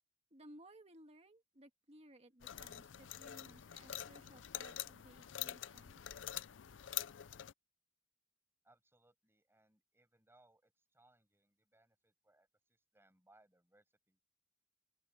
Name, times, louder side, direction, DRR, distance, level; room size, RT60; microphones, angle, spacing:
voice 1, 0.3-6.0, right 1 dB, 35° right, 1.8 m, -60 dB
sound 1, 2.4-7.5, left 12 dB, 80° left, 0.5 m, -46 dB
voice 2, 8.6-14.2, right 2 dB, 15° right, 7.5 m, -71 dB
open air
head